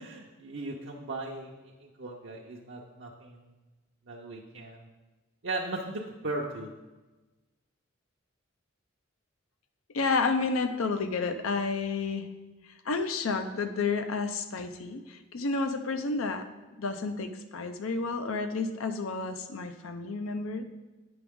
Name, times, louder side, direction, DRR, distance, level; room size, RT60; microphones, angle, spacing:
voice 1, 0.0-3.5 4.1-4.9 5.4-6.7, right 2 dB, 60° right, -2 dB, 0.6 m, -37 dB
voice 2, 9.9-12.3 12.9-16.4 16.8-20.6, left 4 dB, 90° left, 8 dB, 0.6 m, -30 dB
8.7 x 5.9 x 3.6 m, 1.2 s
head